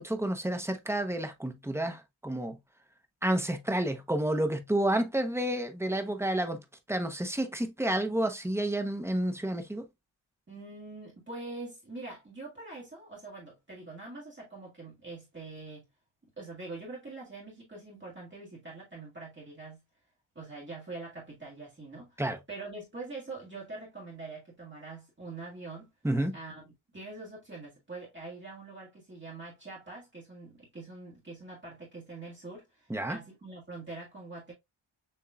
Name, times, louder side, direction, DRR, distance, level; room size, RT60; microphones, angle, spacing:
voice 1, 0.0-2.6 3.2-6.6 6.9-9.8 22.2-22.4 26.0-26.3 32.9-33.2, right 1 dB, 5° right, 0.6 m, -30 dB
voice 2, 10.5-15.8 16.4-19.8 20.3-22.2 22.5-25.9 26.3-34.5, right 3 dB, 25° right, 1.7 m, -44 dB
6.7 x 2.9 x 2.3 m
wide cardioid pair, 155°, 49 cm